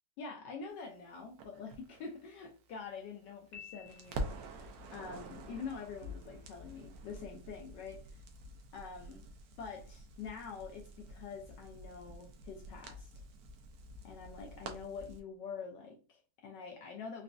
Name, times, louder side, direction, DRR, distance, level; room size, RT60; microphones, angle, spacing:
voice 1, 0.2-8.2 8.7-9.2 9.6-13.2 14.0-17.2, left 5 dB, 75° left, 1.0 m, -46 dB
Crackle, 1.4-3.5 3.9-15.2, right 1 dB, 90° right, 0.8 m, -47 dB
Piano, 3.5-4.6, left 8 dB, 45° left, 1.3 m, -52 dB
3.9 x 2.4 x 2.2 m
omnidirectional pair, 2.2 m